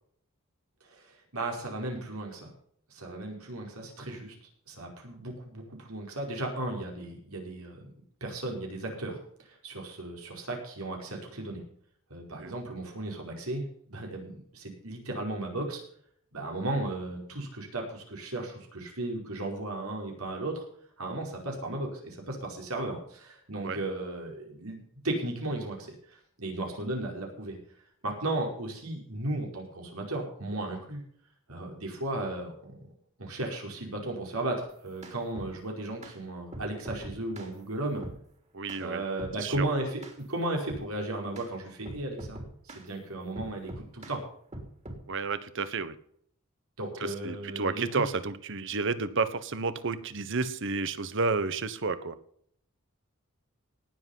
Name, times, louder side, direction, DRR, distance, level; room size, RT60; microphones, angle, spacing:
voice 1, 0.8-2.5 2.9-4.4 4.7-7.9 8.2-11.6 12.1-13.6 13.9-15.8 16.3-20.6 21.0-27.6 28.0-31.0 31.5-32.9 33.2-38.0 38.8-42.4 42.6-44.2 46.8-48.0, right 2 dB, 80° right, 1 dB, 5.1 m, -35 dB
sound 1, 34.7-35.5 36.0-36.2 36.5-37.5 38.0-38.2 38.7-38.8 39.2-39.7 40.0-40.2 40.7-40.9 41.4-41.5 41.9-42.9 43.4-44.2 44.5-45.0, right 1 dB, 30° right, 3.3 m, -42 dB
voice 2, 38.5-39.0 39.4-39.7 45.1-45.9 47.0-52.1, right 4 dB, 60° right, 13 dB, 1.2 m, -31 dB
18.5 x 7.6 x 5.6 m, 0.63 s
head